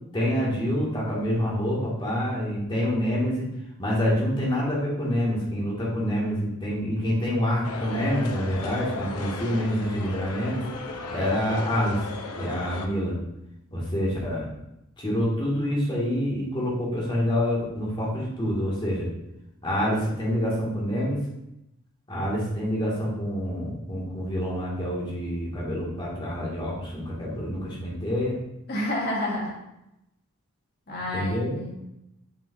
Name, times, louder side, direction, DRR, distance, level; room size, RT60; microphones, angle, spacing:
voice 1, 0.1-3.5 3.8-10.6 11.1-12.0 12.4-13.2 13.7-14.5 15.0-19.1 19.6-21.2 22.1-28.4 31.1-31.5, equal, 20° left, -5 dB, 2.2 m, -27 dB
sound 1, 7.6-12.9, left 3 dB, 85° left, 0.8 m, -36 dB
voice 2, 28.7-29.5 30.9-31.7, left 1 dB, 45° left, -4 dB, 1.8 m, -29 dB
8.9 x 5.6 x 2.7 m, 0.86 s
head